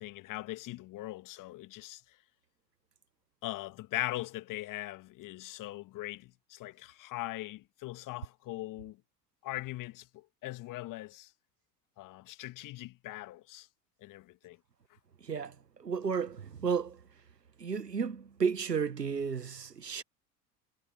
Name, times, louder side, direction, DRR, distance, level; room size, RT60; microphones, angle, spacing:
voice 1, 0.0-2.0 3.4-9.0 9.4-11.3 12.0-13.7 14.0-14.6, left 17 dB, 40° left, 2.1 m, -40 dB
voice 2, 15.2-15.5 15.8-17.0 17.6-20.0, right 6 dB, 85° right, 1.3 m, -33 dB
figure-of-eight pair, 70°, 47 cm